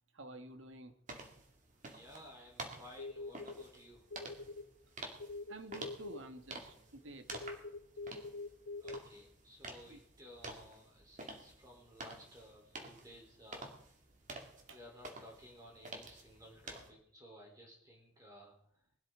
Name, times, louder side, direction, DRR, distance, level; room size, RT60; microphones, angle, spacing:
voice 1, 0.1-0.9 5.5-7.3 9.9-10.0 14.7-14.8, right 2 dB, 70° right, 8 dB, 1.5 m, -50 dB
sound 1, 1.1-16.9, right 2 dB, 40° right, 2.3 m, -50 dB
voice 2, 1.9-4.0 8.8-13.7 14.7-18.6, equal, 20° right, -1 dB, 3.6 m, -56 dB
sound 2, 3.0-3.6 4.1-4.6 5.2-6.2 7.3-9.0, left 3 dB, 85° left, 1.8 m, -44 dB
21.5 x 12.5 x 3.8 m, 0.66 s
head